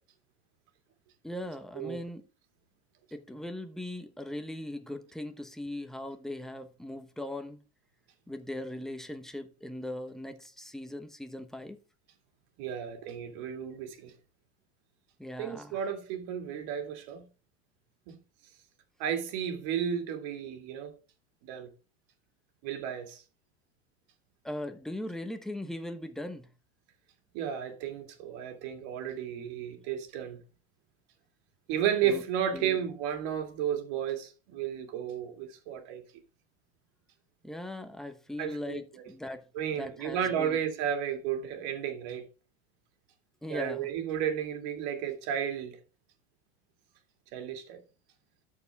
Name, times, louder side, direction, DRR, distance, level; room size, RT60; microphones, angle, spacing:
voice 1, 1.2-2.2 3.1-7.6 8.3-11.8 15.2-15.8 24.4-26.5 32.0-32.2 32.5-32.8 37.4-39.4 39.7-40.6 43.4-43.9, left 1 dB, ahead, 1.0 m, -39 dB
voice 2, 12.6-14.1 15.4-17.3 18.1-18.2 19.0-20.9 21.5-21.7 22.6-23.2 27.3-30.4 31.7-36.0 38.4-38.8 39.5-42.3 43.5-45.7 47.3-47.8, right 9 dB, 60° right, 2.4 m, -33 dB
13.0 x 4.8 x 3.5 m
supercardioid pair, 115°, 33 cm